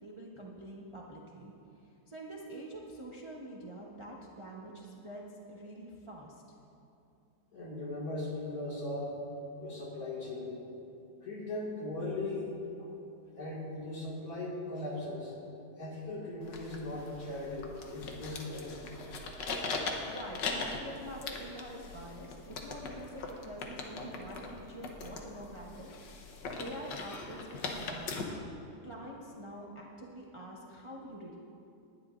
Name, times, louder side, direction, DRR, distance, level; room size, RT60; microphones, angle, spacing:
voice 1, 0.0-1.5 1.8-6.4 20.1-26.2 26.5-28.3 28.8-31.4, right 1 dB, 25° right, -3 dB, 0.7 m, -46 dB
voice 2, 7.5-9.2 9.6-10.5 11.2-12.9 13.3-15.3 15.8-19.0, left 2 dB, 55° left, -4 dB, 2.6 m, -38 dB
sound 1, 16.4-28.2, left 4 dB, 90° left, 1.7 m, -40 dB
19.5 x 11.5 x 2.6 m, 2.7 s
omnidirectional pair, 1.9 m